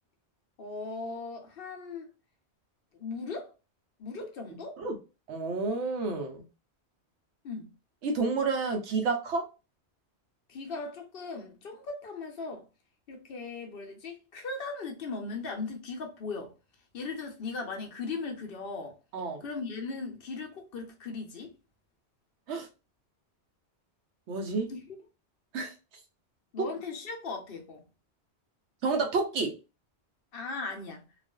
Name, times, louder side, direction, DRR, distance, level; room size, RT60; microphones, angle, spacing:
voice 1, 0.6-2.1 2.9-3.5 4.0-4.8 7.4-7.7 10.5-12.6 13.1-16.5 16.9-19.0 19.4-21.6 24.7-24.9 26.5-27.9 30.3-31.0, left 4 dB, 60° left, 0.8 m, -38 dB
voice 2, 5.3-6.4 8.0-9.5 19.1-19.4 22.5-22.7 24.3-24.7 25.5-25.7 28.8-29.5, right 4 dB, 85° right, 1.0 m, -29 dB
2.4 x 2.3 x 2.2 m
omnidirectional pair, 1.1 m